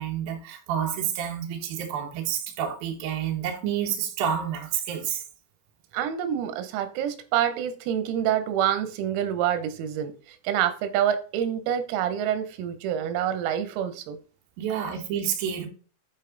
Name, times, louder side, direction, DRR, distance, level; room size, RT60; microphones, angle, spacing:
voice 1, 0.0-5.2 14.6-15.7, right 9 dB, 65° right, 2.4 m, -29 dB
voice 2, 5.9-10.1 10.5-14.2, right 10 dB, 90° right, 3.7 m, -27 dB
8.9 x 4.3 x 3.8 m
omnidirectional pair, 5.9 m